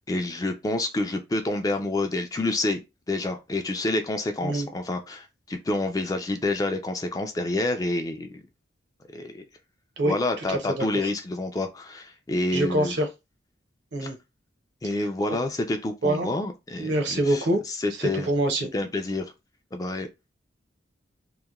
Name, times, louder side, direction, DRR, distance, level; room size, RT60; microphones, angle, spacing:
voice 1, 0.1-2.8 3.1-8.3 9.1-9.4 10.0-12.9 14.0-14.1 14.8-18.3 18.7-19.3 19.7-20.1, left 2 dB, 20° left, 0.3 m, -28 dB
voice 2, 10.5-10.9 12.5-13.1 13.9-14.2 16.0-16.3 16.8-17.6 18.0-18.7, right 1 dB, 70° right, 0.7 m, -25 dB
2.8 x 2.1 x 2.3 m
head